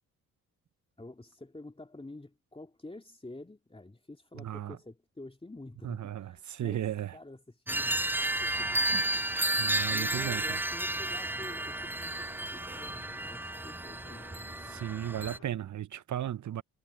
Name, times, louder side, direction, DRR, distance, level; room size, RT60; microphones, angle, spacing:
voice 1, 1.0-6.8 7.1-9.0 9.9-14.3, left 2 dB, 15° left, 2.6 m, -48 dB
voice 2, 4.3-4.8 5.8-7.1 8.9-9.0 9.6-10.6 14.7-16.6, right 11 dB, 55° right, 1.0 m, -35 dB
sound 1, 7.7-15.6, left 7 dB, 50° left, 2.6 m, -56 dB
sound 2, 7.7-15.4, right 1 dB, 5° right, 0.4 m, -32 dB
hypercardioid pair, 45°, 36 cm